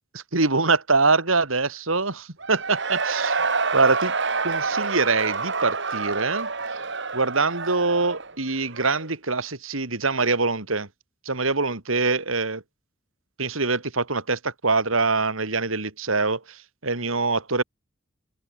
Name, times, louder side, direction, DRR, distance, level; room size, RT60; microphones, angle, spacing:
voice 1, 0.1-3.4 3.7-4.1 4.4-6.5 7.1-10.9 11.2-12.6 13.4-17.6, right 3 dB, 85° right, 3.1 m, -24 dB
Cheering / Crowd, 2.4-9.1, right 4 dB, 65° right, 4.7 m, -28 dB
open air
head